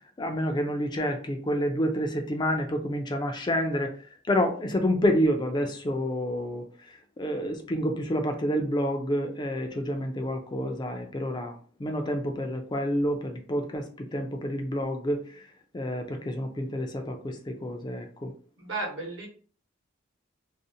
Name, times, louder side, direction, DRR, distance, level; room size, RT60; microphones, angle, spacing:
voice 1, 0.2-4.0 4.3-6.6 7.2-11.5 11.8-15.2 15.7-18.3, equal, 20° left, 4 dB, 0.3 m, -28 dB
voice 2, 18.6-19.3, right 2 dB, 60° right, -1 dB, 0.9 m, -33 dB
2.5 x 2.0 x 2.6 m, 0.42 s
head